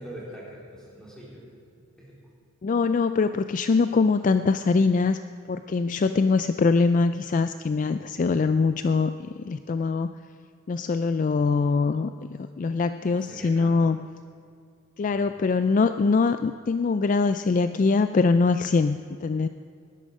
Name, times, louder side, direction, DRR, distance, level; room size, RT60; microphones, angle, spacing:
voice 1, 0.0-1.4 2.0-2.1 13.0-13.7 15.0-15.3, equal, 5° left, -5 dB, 3.8 m, -43 dB
voice 2, 2.6-5.2 5.5-10.1 10.7-12.1 12.6-14.0 15.0-19.5, left 4 dB, 35° left, 10 dB, 0.3 m, -23 dB
17.5 x 11.5 x 5.3 m, 2.3 s
head